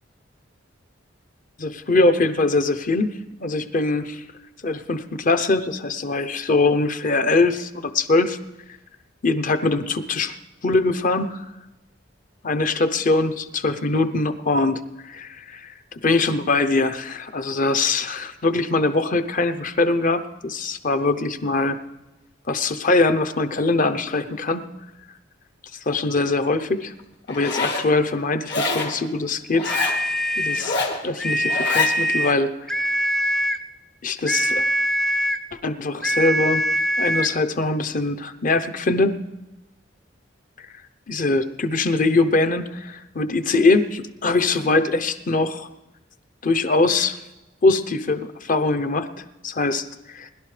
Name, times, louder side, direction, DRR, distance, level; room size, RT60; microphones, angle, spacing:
voice 1, 1.6-4.2 4.6-8.4 9.2-10.4 10.6-11.4 12.4-21.8 22.5-24.7 25.9-26.9 27.3-29.8 30.4-30.8 31.0-33.0 34.0-34.6 35.6-36.7 37.0-39.2 40.6-40.7 41.1-45.7 46.4-47.2 47.6-50.3, left 3 dB, 45° left, 10 dB, 0.7 m, -22 dB
Zipper (clothing), 27.3-27.9 28.5-29.0 29.5-30.0 30.5-31.0 31.5-31.9, left 3 dB, 65° left, 1.9 m, -25 dB
sound 1, 29.6-30.7 31.2-32.4 32.7-33.7 34.3-35.5 36.0-37.4, equal, 5° left, 0.3 m, -23 dB
21.0 x 12.0 x 3.3 m, 1.0 s
head